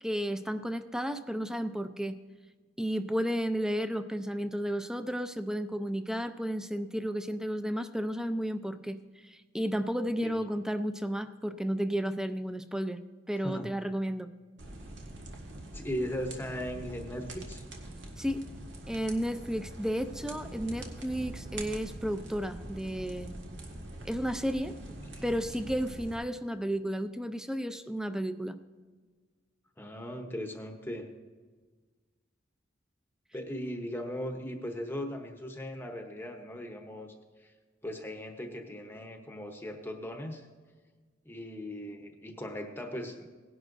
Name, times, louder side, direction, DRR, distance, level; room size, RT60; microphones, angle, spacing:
voice 1, 0.0-2.2 2.8-9.0 9.2-13.0 13.3-14.3 18.2-18.5 18.9-23.3 24.0-24.7 25.2-28.6, equal, 5° right, 10 dB, 0.5 m, -32 dB
sound 1, 14.6-26.2, right 1 dB, 85° right, 1.7 m, -44 dB
voice 2, 15.7-17.6 25.1-25.3 29.8-31.1 33.3-37.5 37.8-40.5 41.3-43.3, equal, 10° left, 4 dB, 0.9 m, -38 dB
18.0 x 11.0 x 2.6 m, 1.4 s
head